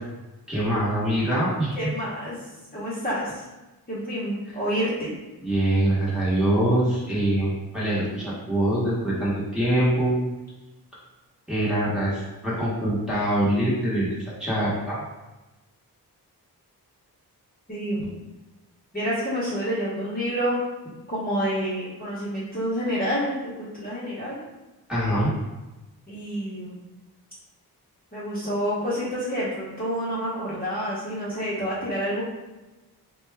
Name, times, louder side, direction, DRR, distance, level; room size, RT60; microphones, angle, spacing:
voice 1, 0.5-1.9 5.4-10.2 11.5-15.0 18.0-18.1 24.9-25.3, right 1 dB, ahead, -9 dB, 1.1 m, -24 dB
voice 2, 1.8-2.4 2.7-3.4 3.9-5.1 17.7-18.1 18.9-20.6 21.1-24.4 26.1-26.8 28.1-32.2, equal, 20° left, -9 dB, 1.0 m, -28 dB
4.3 x 2.3 x 3.4 m, 1.1 s
wide cardioid pair, 155°, 38 cm